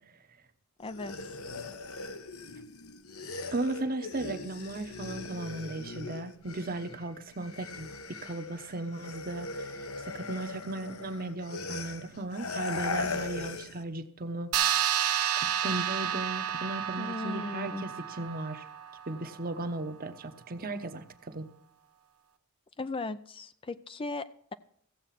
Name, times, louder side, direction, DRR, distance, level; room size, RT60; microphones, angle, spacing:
sound 1, 0.8-7.0 7.3-13.8, left 3 dB, 75° left, 1.1 m, -39 dB
voice 1, 0.8-1.4 17.0-17.9 22.8-24.5, left 2 dB, 25° left, 13 dB, 0.4 m, -37 dB
voice 2, 3.5-7.9 8.2-14.5 15.4-18.6 19.1-21.5, right 2 dB, 40° right, 9 dB, 1.0 m, -36 dB
sound 2, 14.5-19.4, right 9 dB, 90° right, 0.9 m, -31 dB
15.0 x 8.0 x 5.8 m, 0.65 s
head